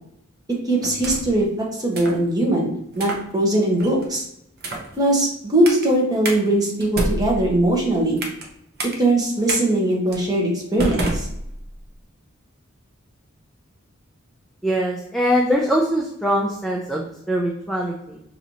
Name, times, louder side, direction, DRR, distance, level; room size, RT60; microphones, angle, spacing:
voice 1, 0.7-2.7 2.9-4.3 5.0-8.2 9.0-11.3, right 1 dB, 20° right, -3 dB, 1.1 m, -20 dB
sound 1, 0.8-1.4 1.9-2.2 2.9-3.3 3.8-4.1 4.6-4.9 5.6-5.9 6.2-6.4 6.8-8.5 8.8-9.0 9.5-9.6 10.1-10.3 10.8-11.9, right 1 dB, 50° right, 0.7 m, -28 dB
voice 2, 14.6-18.2, equal, ahead, -2 dB, 0.4 m, -22 dB
5.2 x 2.7 x 3.0 m, 0.77 s
head